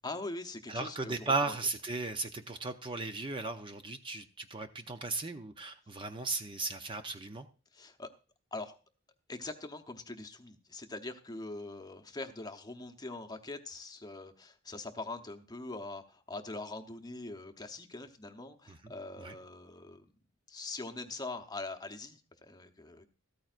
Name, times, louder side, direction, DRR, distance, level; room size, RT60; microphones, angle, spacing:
voice 1, 0.0-1.6 7.7-8.1 8.5-8.8 9.3-20.1 20.5-23.1, left 2 dB, 20° left, 6 dB, 0.8 m, -43 dB
voice 2, 0.7-7.5 18.7-18.8 19.2-19.3, right 3 dB, 25° right, 7 dB, 0.6 m, -36 dB
14.0 x 13.5 x 2.5 m, 0.34 s
head